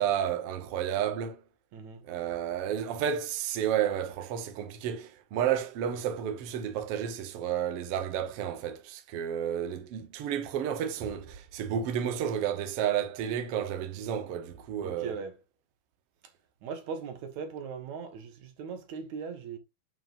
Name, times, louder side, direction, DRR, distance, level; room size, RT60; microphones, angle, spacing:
voice 1, 0.0-1.4 2.0-15.1, right 9 dB, 80° right, 1.3 m, -31 dB
voice 2, 1.7-2.0 14.8-15.4 16.6-19.6, right 6 dB, 60° right, 2.4 m, -39 dB
9.2 x 5.0 x 2.6 m
omnidirectional pair, 4.2 m